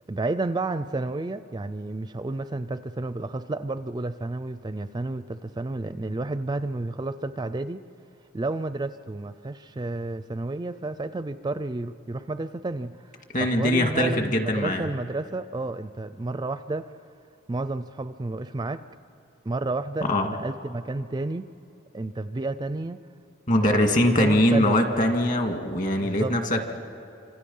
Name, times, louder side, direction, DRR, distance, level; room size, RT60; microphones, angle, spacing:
voice 1, 0.1-7.8 8.3-13.1 13.4-16.9 17.5-18.8 19.4-21.5 21.9-23.0 23.6-25.1 26.0-26.4, right 2 dB, 20° right, 12 dB, 0.4 m, -31 dB
voice 2, 13.3-14.8 20.1-20.3 23.5-26.8, left 1 dB, 40° left, 4 dB, 2.0 m, -22 dB
27.5 x 26.0 x 5.5 m, 2.7 s
head